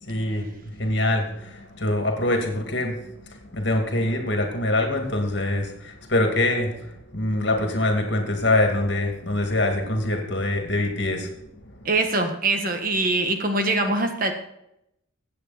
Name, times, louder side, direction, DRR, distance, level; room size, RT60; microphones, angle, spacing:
voice 1, 0.0-11.9, left 1 dB, 55° left, 3 dB, 2.5 m, -25 dB
voice 2, 11.8-14.3, right 2 dB, 40° right, 6 dB, 1.6 m, -23 dB
16.0 x 8.5 x 4.3 m, 0.80 s
head